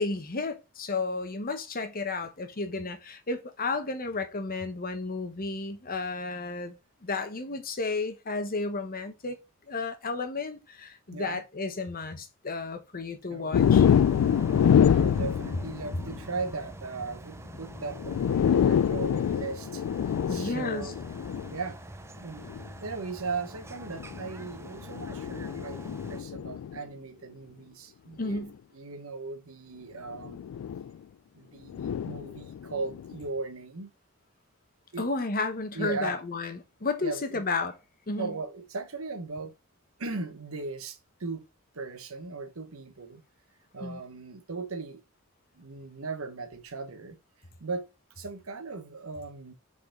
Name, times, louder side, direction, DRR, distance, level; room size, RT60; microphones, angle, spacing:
voice 1, 0.0-6.8 7.0-9.4 9.7-13.9 20.3-20.9 28.2-28.6 35.0-37.7 38.1-38.3 43.8-44.0, left 3 dB, 45° left, 1.0 m, -32 dB
voice 2, 11.1-11.4 13.3-13.6 14.9-19.8 20.3-20.9 21.5-21.8 22.2-22.5 22.8-28.4 28.7-30.4 31.3-33.9 34.9-35.1 35.7-36.2 37.0-37.4 38.2-39.5 40.0-41.5 41.7-43.2 43.7-45.0 45.5-47.2 47.6-47.9 48.2-49.5, right 4 dB, 70° right, 1.1 m, -37 dB
sound 1, 13.5-16.2 17.5-17.6 18.0-21.6 22.4-22.7 23.9-26.8 28.3-28.4 30.1-30.9 31.7-33.1, left 8 dB, 85° left, 0.3 m, -26 dB
sound 2, 13.5-26.2, right 1 dB, 15° right, 0.5 m, -44 dB
5.2 x 4.1 x 5.0 m
head